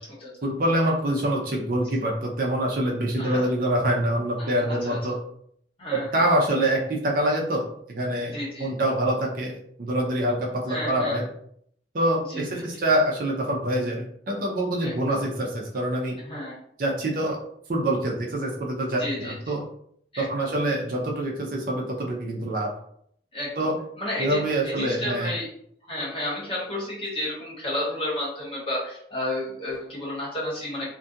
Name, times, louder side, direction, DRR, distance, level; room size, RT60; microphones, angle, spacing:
voice 1, 0.4-5.2 5.9-11.2 11.9-16.2 16.8-17.4 17.7-19.6 20.2-22.7 23.6-23.8 24.2-25.3, right 1 dB, 50° right, -1 dB, 0.5 m, -25 dB
voice 2, 3.2-3.5 4.4-5.0 5.8-6.2 8.3-8.7 10.7-11.3 12.3-12.6 14.8-15.2 16.2-16.5 19.0-19.4 20.1-20.5 23.3-23.7 24.0-25.5 25.8-30.9, left 1 dB, 30° left, -6 dB, 1.1 m, -32 dB
2.4 x 2.2 x 2.7 m, 0.67 s
head